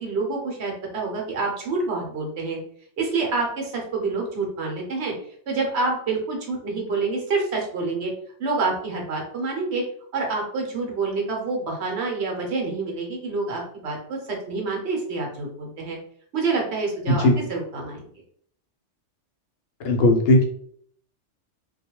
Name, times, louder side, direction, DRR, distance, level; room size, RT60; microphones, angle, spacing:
voice 1, 0.0-2.6 3.0-5.1 5.5-8.1 8.4-9.8 10.1-16.0 16.3-18.0, right 3 dB, 65° right, 0 dB, 0.9 m, -27 dB
voice 2, 19.8-20.4, left 1 dB, 75° left, 2 dB, 0.9 m, -17 dB
2.3 x 2.2 x 2.9 m, 0.62 s
omnidirectional pair, 1.2 m